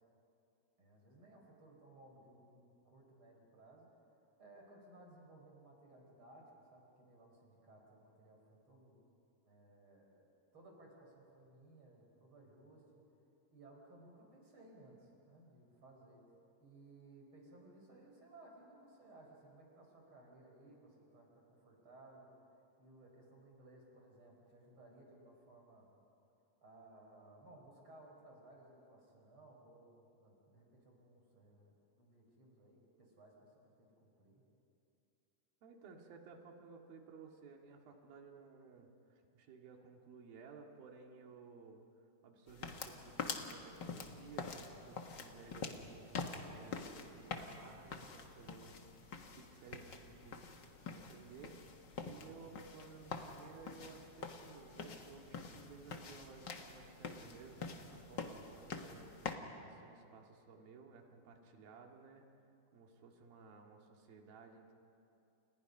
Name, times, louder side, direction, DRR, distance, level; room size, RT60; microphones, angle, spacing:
voice 1, 0.8-3.9 4.4-9.0 9.5-10.3 10.5-12.8 13.5-16.2 16.6-22.3 22.8-25.9 26.6-34.4, right 2 dB, 35° right, 0 dB, 5.6 m, -60 dB
voice 2, 35.6-41.9 42.2-50.4 50.9-51.6 52.0-62.2 62.7-64.7, right 5 dB, 85° right, 2 dB, 3.9 m, -57 dB
sound 1, 42.5-59.4, left 5 dB, 50° left, 1.3 m, -46 dB
30.0 x 29.5 x 5.5 m, 2.7 s
omnidirectional pair, 4.1 m